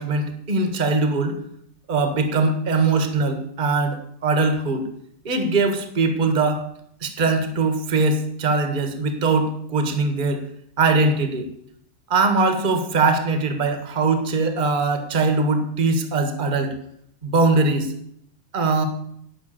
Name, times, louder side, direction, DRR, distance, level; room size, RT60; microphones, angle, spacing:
voice 1, 0.0-1.4 1.9-4.9 5.2-6.7 7.0-10.4 10.8-11.5 12.1-16.7 17.2-17.9 18.5-18.8, right 3 dB, 30° right, 7 dB, 1.3 m, -21 dB
10.5 x 6.0 x 7.5 m, 0.70 s
omnidirectional pair, 2.2 m